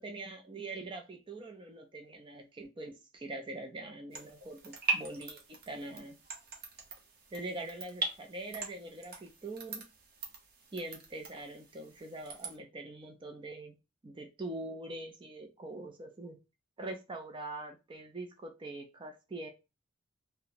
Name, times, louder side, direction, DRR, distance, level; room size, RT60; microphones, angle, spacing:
voice 1, 0.0-6.2 7.3-9.8 10.7-13.8 14.0-16.4 16.8-19.5, right 2 dB, 25° right, 0.4 m, -43 dB
sound 1, 4.1-12.6, right 4 dB, 50° right, 0.9 m, -41 dB
2.8 x 2.2 x 4.0 m
head